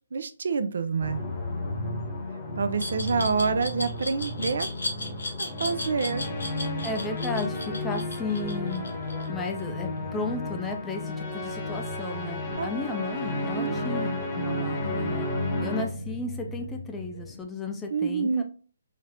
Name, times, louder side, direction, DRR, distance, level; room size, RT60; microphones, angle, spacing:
voice 1, 0.1-1.2 2.6-4.7 5.4-6.2 12.6-12.7 13.5-13.8 17.9-18.4, right 5 dB, 65° right, 12 dB, 0.3 m, -27 dB
sound 1, 1.0-15.8, left 2 dB, 30° left, 0.9 m, -33 dB
Glass, 2.8-9.6, left 2 dB, 80° left, 0.8 m, -35 dB
Electronic voice stutter, 5.8-17.4, left 1 dB, 55° left, 1.0 m, -41 dB
voice 2, 6.8-8.9 9.3-15.3 15.6-18.4, left 3 dB, 10° left, 3 dB, 0.5 m, -34 dB
3.9 x 2.0 x 2.7 m, 0.38 s
figure-of-eight pair, 145°, 0 cm